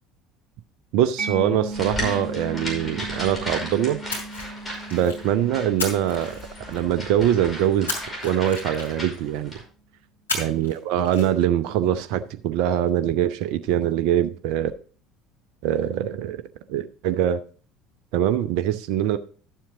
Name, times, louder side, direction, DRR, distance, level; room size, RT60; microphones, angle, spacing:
voice 1, 0.9-4.0 4.9-6.3 6.7-7.9 8.2-9.5 10.3-14.7 15.6-16.4 16.7-17.4 18.1-19.2, right 10 dB, 60° right, 0.6 m, -23 dB
Mallet percussion, 1.2-8.6, right 3 dB, 25° right, 1.9 m, -37 dB
sound 1, 1.7-9.6, equal, 15° left, 5.4 m, -35 dB
Splash splatter, 4.1-5.3 5.8-7.0 7.9-9.2 10.3-10.8 11.0-11.3, left 2 dB, 80° left, 3.0 m, -33 dB
12.0 x 7.4 x 3.8 m
figure-of-eight pair, 65°, 0 cm